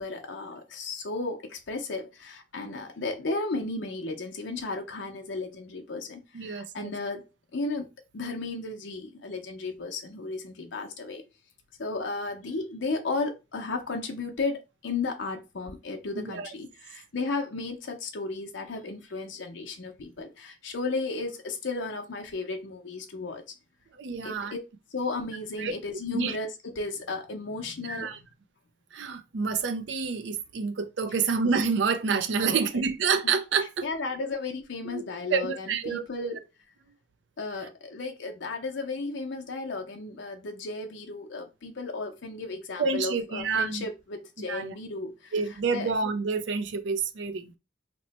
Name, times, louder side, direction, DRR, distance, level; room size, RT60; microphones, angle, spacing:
voice 1, 0.0-7.3 7.5-11.2 11.8-23.4 24.2-24.6 24.9-28.3 32.4-32.7 33.8-36.4 37.4-45.3 45.7-45.9, left 3 dB, 75° left, 0.6 m, -34 dB
voice 2, 6.3-6.9 16.2-16.5 24.0-24.5 25.6-25.7 26.1-26.4 27.9-28.2 28.9-33.9 34.2-34.3 34.9-35.0 35.3-36.4 42.8-43.8 44.5-44.7 45.3-47.5, right 5 dB, 75° right, 0.4 m, -28 dB
2.9 x 2.1 x 4.0 m
head